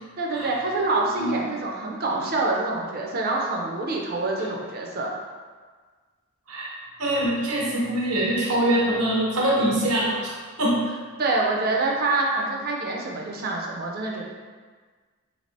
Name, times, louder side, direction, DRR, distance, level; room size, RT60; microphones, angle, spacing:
voice 1, 0.2-5.1 11.2-14.2, right 2 dB, 45° right, -1 dB, 0.4 m, -26 dB
voice 2, 7.0-10.3 10.6-10.8, right 1 dB, 85° right, -4 dB, 0.8 m, -23 dB
3.2 x 3.2 x 2.6 m, 1.5 s
head